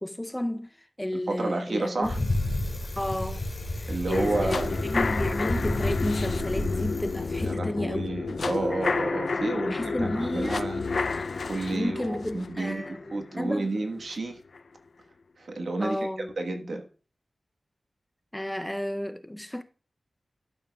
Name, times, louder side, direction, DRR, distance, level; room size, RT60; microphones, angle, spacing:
voice 1, 0.0-2.1 3.0-3.4 3.8-4.6 4.8-8.1 9.3-10.7 11.7-13.7 15.8-16.3 16.6-16.7 18.3-19.6, left 1 dB, 10° left, 0.5 m, -32 dB
voice 2, 1.1-2.2 3.9-4.7 7.4-10.8 11.4-14.4 15.4-16.1 16.4-16.9, right 2 dB, 75° right, 1.2 m, -31 dB
Bicycle, 2.0-7.5, left 1 dB, 50° left, 2.2 m, -31 dB
sound 1, 4.1-14.1 14.5-14.6, left 4 dB, 75° left, 0.3 m, -31 dB
12.0 x 6.9 x 2.2 m
wide cardioid pair, 105°, 0 cm